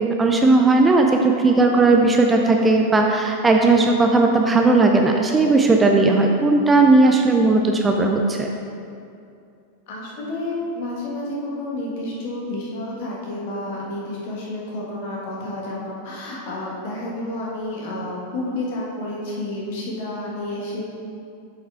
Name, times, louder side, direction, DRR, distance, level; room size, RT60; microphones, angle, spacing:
voice 1, 0.2-8.5, right 3 dB, 15° right, 2 dB, 0.5 m, -16 dB
voice 2, 9.9-20.8, left 1 dB, 50° left, -4 dB, 1.7 m, -30 dB
7.3 x 5.5 x 3.5 m, 2.5 s
figure-of-eight pair, 90°, 0 cm